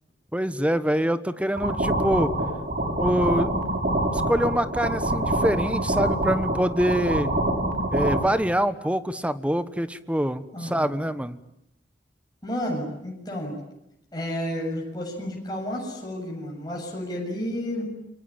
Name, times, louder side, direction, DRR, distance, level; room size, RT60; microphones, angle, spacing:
voice 1, 0.3-2.3 3.0-3.5 4.1-7.3 7.9-11.4, equal, 5° right, 12 dB, 1.2 m, -25 dB
sound 1, 1.6-8.2, right 1 dB, 50° right, 6.7 m, -25 dB
voice 2, 10.5-11.1 12.4-13.6 14.1-17.9, equal, 25° left, -1 dB, 7.6 m, -31 dB
29.0 x 23.5 x 8.8 m, 0.82 s
head